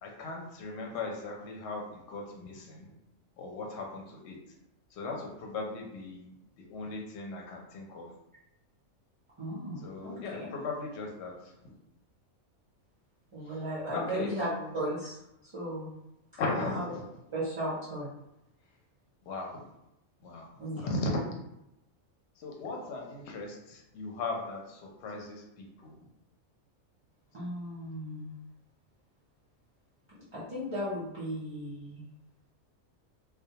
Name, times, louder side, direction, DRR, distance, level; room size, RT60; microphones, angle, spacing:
voice 1, 0.0-2.9 3.4-4.4 4.9-6.3 6.6-8.1 9.8-11.3 11.6-11.7 13.9-14.7 16.4-17.1 19.3-19.6 20.2-20.5 20.7-21.2 22.4-25.9, left 2 dB, 60° left, 0 dB, 0.8 m, -37 dB
voice 2, 9.4-10.5 13.3-14.5 14.7-15.9 16.5-16.8 17.3-18.1 20.6-20.9 27.3-28.3 30.3-32.0, right 1 dB, 40° right, -9 dB, 0.4 m, -36 dB
2.2 x 2.2 x 2.7 m, 0.86 s
omnidirectional pair, 1.4 m